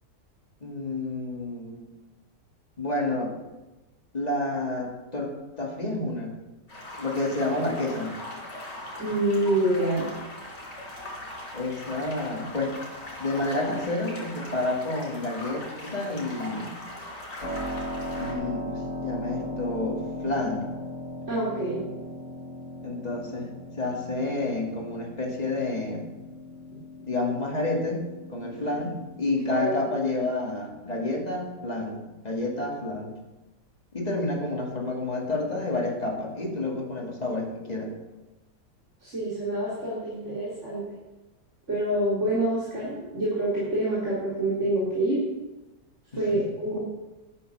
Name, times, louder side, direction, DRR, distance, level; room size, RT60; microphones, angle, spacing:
voice 1, 0.6-1.8 2.8-3.3 4.1-6.3 7.0-8.2 11.5-12.8 13.2-16.8 18.2-20.7 22.8-26.0 27.1-33.2 33.9-37.9 46.1-46.4, left 2 dB, 25° left, 1 dB, 2.1 m, -30 dB
sound 1, 6.7-18.3, left 1 dB, 40° left, 4.0 m, -40 dB
voice 2, 9.0-10.1 21.3-21.8 29.5-29.7 39.0-40.8 41.7-45.2 46.1-46.8, right 1 dB, 40° right, -8 dB, 3.9 m, -26 dB
Keyboard (musical), 17.4-29.9, left 1 dB, 75° left, 3.2 m, -38 dB
12.0 x 8.7 x 6.7 m, 1.1 s
omnidirectional pair, 1.8 m